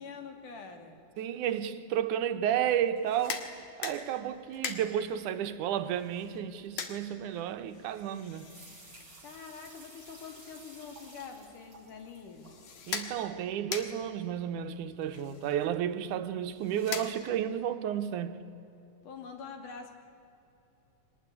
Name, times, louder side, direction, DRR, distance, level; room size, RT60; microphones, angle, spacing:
voice 1, 0.0-1.0 9.2-12.5 19.0-19.9, left 5 dB, 85° left, 3.9 m, -45 dB
voice 2, 1.2-3.4 3.8-8.6 12.9-18.4, right 10 dB, 80° right, 2.4 m, -32 dB
sound 1, 2.9-17.6, left 6 dB, 65° left, 2.9 m, -44 dB
sound 2, 8.3-12.8, right 2 dB, 35° right, 6.1 m, -54 dB
23.5 x 19.5 x 9.8 m
omnidirectional pair, 3.5 m